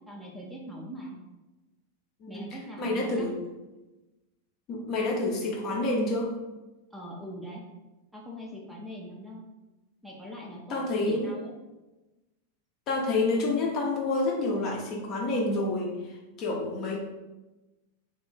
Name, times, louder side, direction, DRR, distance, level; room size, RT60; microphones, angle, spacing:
voice 1, 0.1-1.2 2.3-3.3 6.9-7.6 8.1-9.4 10.0-11.5, equal, ahead, -3 dB, 0.6 m, -42 dB
voice 2, 2.8-3.3 4.7-6.3 10.7-11.3 12.9-17.0, left 2 dB, 35° left, -1 dB, 0.8 m, -28 dB
3.3 x 2.3 x 3.8 m, 1.1 s
figure-of-eight pair, 90°, 0 cm